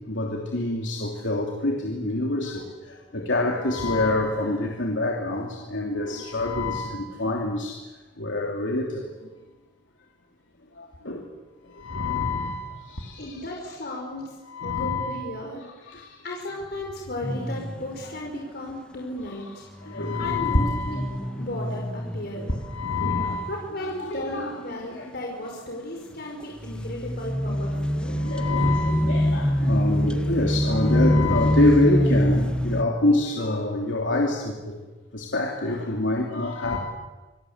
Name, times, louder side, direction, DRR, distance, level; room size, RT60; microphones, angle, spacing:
voice 1, 0.1-2.6 3.1-7.8 8.2-9.0 11.0-11.2 11.8-12.6 13.0-13.1 14.5-15.1 15.9-16.0 19.9-21.0 22.7-23.4 23.8-24.5 24.9-25.1 27.5-34.8 35.1-36.8, left 2 dB, 90° left, 0 dB, 3.1 m, -26 dB
voice 2, 13.2-14.4 14.6-19.7 19.9-21.0 21.3-22.5 23.5-28.2, left 1 dB, 60° left, 0 dB, 4.8 m, -35 dB
sound 1, 17.2-18.2 19.7-24.2 24.6-25.1 26.6-32.8, equal, 5° left, 1.3 m, -25 dB
27.5 x 23.0 x 8.1 m, 1.2 s
head